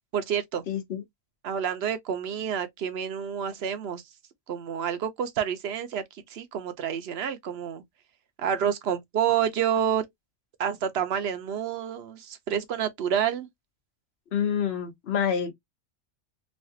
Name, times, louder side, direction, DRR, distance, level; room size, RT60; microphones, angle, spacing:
voice 1, 0.1-0.6 1.4-4.0 4.5-7.8 8.4-10.0 10.6-13.5, right 8 dB, 65° right, 0.9 m, -28 dB
voice 2, 0.7-1.0 14.3-15.5, left 8 dB, 65° left, 1.0 m, -27 dB
3.2 x 2.3 x 2.7 m
omnidirectional pair, 1.2 m